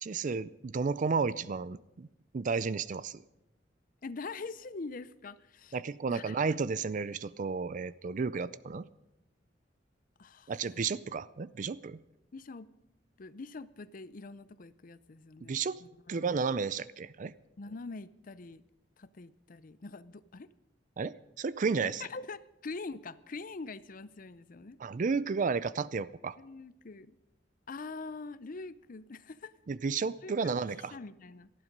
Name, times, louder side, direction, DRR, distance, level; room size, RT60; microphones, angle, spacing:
voice 1, 0.0-2.1 2.3-3.2 5.7-8.9 10.5-12.0 15.4-15.8 16.1-17.3 21.0-22.1 24.8-26.4 29.7-30.9, right 5 dB, 45° right, 0.4 m, -32 dB
voice 2, 4.0-5.8 6.1-6.4 10.2-10.5 12.3-12.7 13.2-16.4 17.6-18.6 19.0-20.5 21.8-24.8 26.4-27.2 27.7-29.5 30.2-30.3 30.8-31.5, left 3 dB, 50° left, 0.6 m, -44 dB
18.5 x 12.5 x 5.3 m
head